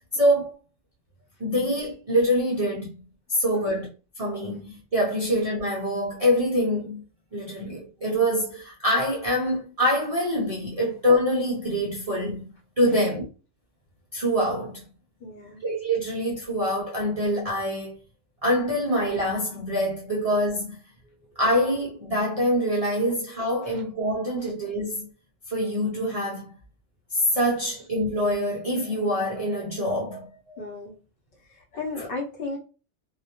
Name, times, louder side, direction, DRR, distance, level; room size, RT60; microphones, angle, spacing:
voice 1, 0.1-0.5 1.4-3.0 3.3-3.9 4.2-7.0 7.3-12.5 12.8-13.2 14.1-14.8 15.6-18.0 18.4-20.8 21.4-25.1 25.5-26.5 27.1-30.3 32.0-32.1, equal, 50° right, 0.4 m, -25 dB
voice 2, 15.2-15.6 21.0-21.1 23.7-23.8 30.6-30.9 31.5-32.6, left 3 dB, 55° left, 0.7 m, -35 dB
2.2 x 2.0 x 2.7 m
omnidirectional pair, 1.3 m